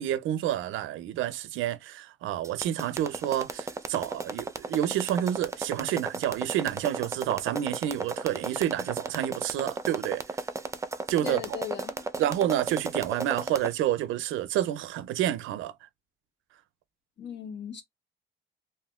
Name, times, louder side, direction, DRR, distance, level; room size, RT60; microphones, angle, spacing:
voice 1, 0.0-10.4 11.1-11.6 12.2-15.9, right 12 dB, 85° right, 0.4 m, -29 dB
sound 1, 2.4-13.7, right 3 dB, 15° right, 0.5 m, -34 dB
voice 2, 11.2-11.9 17.2-17.8, left 8 dB, 65° left, 1.4 m, -37 dB
3.4 x 2.7 x 2.3 m
cardioid pair, 90°, 20 cm